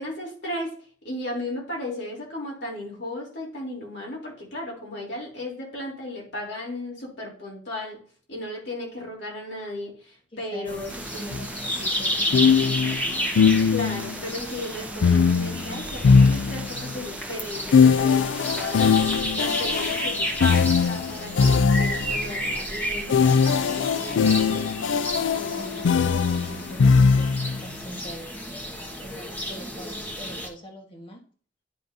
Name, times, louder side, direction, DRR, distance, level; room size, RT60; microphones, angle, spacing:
voice 1, 0.0-8.0 8.3-11.5 13.7-24.8 25.3-25.7, left 1 dB, 65° left, -3 dB, 3.2 m, -35 dB
voice 2, 10.3-13.1 24.2-24.7 25.5-28.4 28.9-31.2, equal, 30° left, 2 dB, 1.4 m, -43 dB
sound 1, 10.7-30.5, equal, 10° left, 1.2 m, -32 dB
sound 2, 10.9-18.9, right 2 dB, 5° right, 0.6 m, -40 dB
sound 3, 11.3-11.5 12.3-14.1 15.0-16.9 17.7-22.2 23.1-27.6, left 5 dB, 85° left, 0.4 m, -20 dB
10.5 x 5.5 x 2.7 m, 0.43 s
head